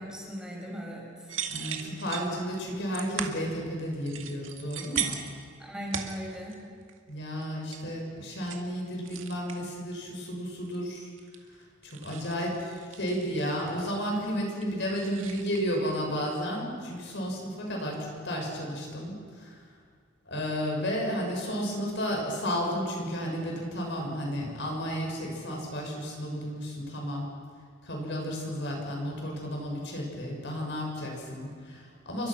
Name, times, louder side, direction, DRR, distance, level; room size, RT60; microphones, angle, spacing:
voice 1, 0.0-1.3 5.6-6.6, equal, 5° right, -3 dB, 5.8 m, -38 dB
sound 1, 1.3-2.3 2.9-3.5 4.1-5.5 5.9-6.6 6.9-7.1 7.4-7.8 8.2-8.7 9.0-9.6 10.5-11.5 11.8-14.3 14.6-15.6, right 8 dB, 80° right, 2.1 m, -38 dB
voice 2, 1.5-5.2 7.1-11.1 11.8-19.6 20.2-27.3 27.8-32.3, equal, 65° left, 0 dB, 6.7 m, -32 dB
29.5 x 23.5 x 6.2 m, 2.1 s
head